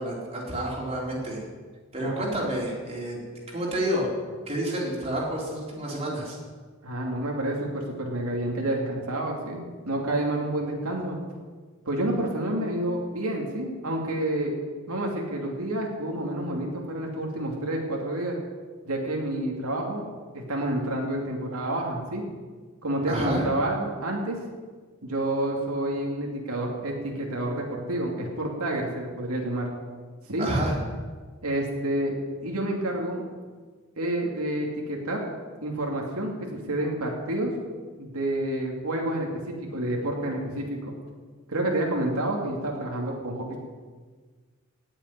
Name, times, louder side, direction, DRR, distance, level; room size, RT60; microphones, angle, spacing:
voice 1, 0.0-1.4 1.9-3.2 3.5-4.1 4.5-6.4 23.1-23.4 30.4-30.8, right 1 dB, 30° right, -3 dB, 4.2 m, -29 dB
voice 2, 6.8-11.2 11.9-14.5 14.9-18.4 18.9-20.1 20.3-22.2 22.8-24.4 25.0-29.7 30.3-30.5 31.4-32.2 32.4-33.2 34.0-35.2 35.6-37.5 38.0-40.9 41.5-43.6, right 1 dB, 85° right, 0 dB, 2.8 m, -29 dB
17.5 x 7.4 x 9.7 m, 1.5 s
head